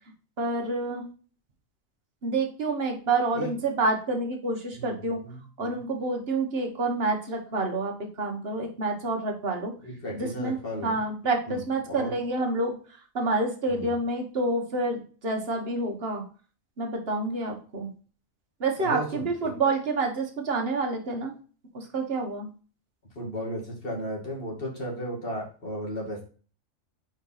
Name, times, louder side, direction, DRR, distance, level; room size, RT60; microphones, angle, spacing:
voice 1, 0.4-1.1 2.2-5.2 5.6-9.7 10.1-12.7 13.1-16.2 16.8-17.9 18.6-21.3 21.7-22.5, right 3 dB, 50° right, 2 dB, 1.5 m, -28 dB
voice 2, 4.7-5.8 9.8-11.0 11.5-11.6 11.9-12.1 13.7-13.9 18.8-19.5 23.2-26.2, equal, 45° left, -2 dB, 2.3 m, -35 dB
4.8 x 4.5 x 5.6 m, 0.39 s
omnidirectional pair, 1.4 m